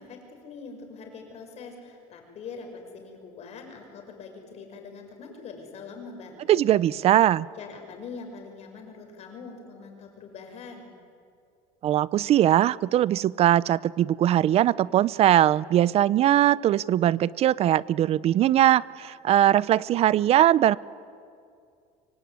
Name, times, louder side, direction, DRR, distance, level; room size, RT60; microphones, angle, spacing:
voice 1, 0.0-6.6 7.5-10.9, left 4 dB, 45° left, 4 dB, 6.2 m, -43 dB
voice 2, 6.5-7.5 11.8-20.8, right 12 dB, 45° right, 20 dB, 0.6 m, -21 dB
25.0 x 24.5 x 9.6 m, 2.3 s
cardioid pair, 140°, 15 cm